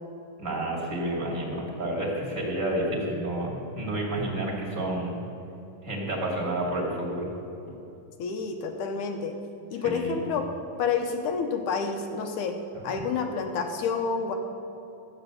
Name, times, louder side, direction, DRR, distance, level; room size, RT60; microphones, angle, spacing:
voice 1, 0.4-5.1 5.8-7.3 9.8-10.2 12.8-13.0, right 1 dB, 25° right, -2 dB, 2.0 m, -30 dB
voice 2, 8.2-9.3 9.7-10.5 10.8-12.6 12.8-14.4, left 5 dB, 75° left, 5 dB, 2.0 m, -29 dB
13.5 x 8.8 x 6.6 m, 2.9 s
omnidirectional pair, 4.2 m